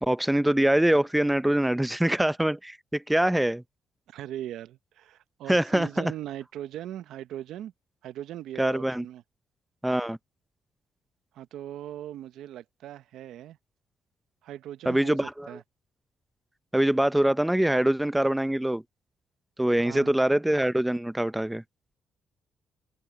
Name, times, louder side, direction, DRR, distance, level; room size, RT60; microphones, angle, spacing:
voice 1, 0.0-3.6 5.5-6.1 8.6-9.0 9.8-10.2 14.9-15.5 16.7-18.8 19.6-21.6, right 1 dB, 5° right, 0.5 m, -24 dB
voice 2, 4.1-7.7 8.0-9.2 11.3-13.6 14.4-15.2 15.5-15.6 19.8-20.1, right 12 dB, 80° right, 0.7 m, -39 dB
open air
cardioid pair, 90°, 0 cm